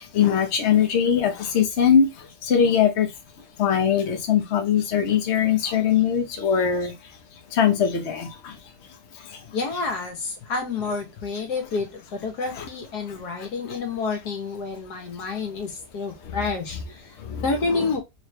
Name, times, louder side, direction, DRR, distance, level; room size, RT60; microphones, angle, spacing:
voice 1, 0.0-3.1 3.6-6.9 7.5-8.6 9.1-9.4 12.5-12.7 13.1-13.5 16.2-16.4 17.2-17.4 17.7-17.9, left 8 dB, 50° left, 1.1 m, -22 dB
voice 2, 9.5-17.1 17.4-18.0, left 4 dB, 75° left, 1.7 m, -29 dB
3.7 x 3.2 x 3.2 m
omnidirectional pair, 1.7 m